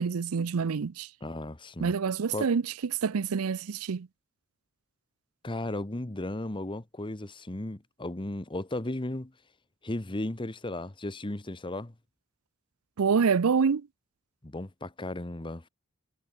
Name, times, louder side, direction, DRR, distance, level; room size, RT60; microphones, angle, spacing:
voice 1, 0.0-1.1 1.8-2.6 3.0-4.1 13.0-13.9, right 5 dB, 90° right, 0.5 m, -26 dB
voice 2, 1.2-1.9 2.3-2.5 5.4-9.3 9.8-11.9 14.4-15.6, left 1 dB, 25° left, 1.1 m, -35 dB
head